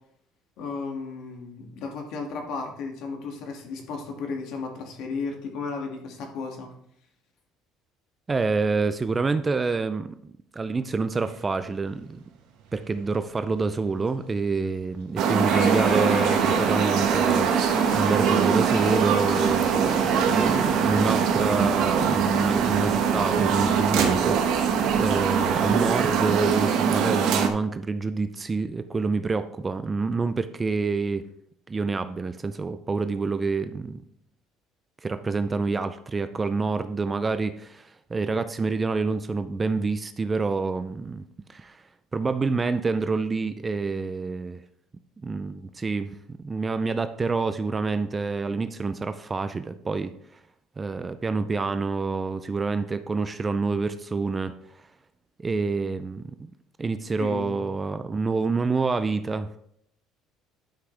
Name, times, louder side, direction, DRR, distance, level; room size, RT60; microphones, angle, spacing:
voice 1, 0.6-6.7 57.2-57.7, left 4 dB, 60° left, 2 dB, 2.0 m, -34 dB
voice 2, 8.3-12.2 12.7-31.2 31.7-34.0 35.0-41.2 41.5-41.8 42.1-44.6 45.2-50.1 50.8-54.5 55.4-56.5 56.8-59.6, right 4 dB, 15° right, 11 dB, 0.4 m, -27 dB
Motor vehicle (road), 11.1-27.0, right 6 dB, 75° right, 1.4 m, -41 dB
sound 1, 15.2-27.5, right 7 dB, 60° right, 1.1 m, -23 dB
sound 2, 15.5-26.7, left 2 dB, 25° left, 1.4 m, -37 dB
11.5 x 6.0 x 3.4 m, 0.70 s
cardioid pair, 155°, 0 cm